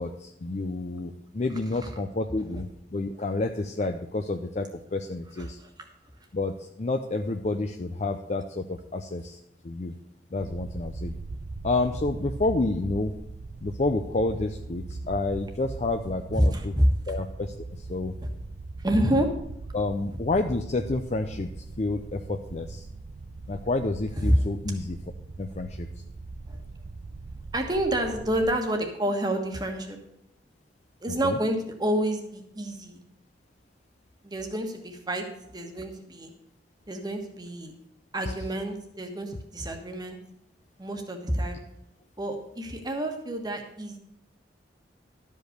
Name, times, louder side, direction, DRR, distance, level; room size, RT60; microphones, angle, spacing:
voice 1, 0.0-5.6 6.3-9.4 9.6-9.9 10.3-11.1 11.6-13.1 13.6-16.7 17.1-18.1 19.7-21.5 21.8-22.9 23.5-25.0 25.4-25.9 31.2-31.4, left 2 dB, 40° left, 6 dB, 0.5 m, -29 dB
sound 1, 10.4-28.6, right 3 dB, 65° right, 0.5 m, -40 dB
voice 2, 16.3-16.9 18.8-19.3 24.2-24.4 26.5-26.6 27.5-30.0 31.0-33.0 34.2-36.3 36.9-37.7 38.1-40.2 40.8-41.6 42.2-44.0, right 1 dB, 25° right, 4 dB, 1.5 m, -28 dB
12.0 x 5.3 x 6.6 m, 0.81 s
head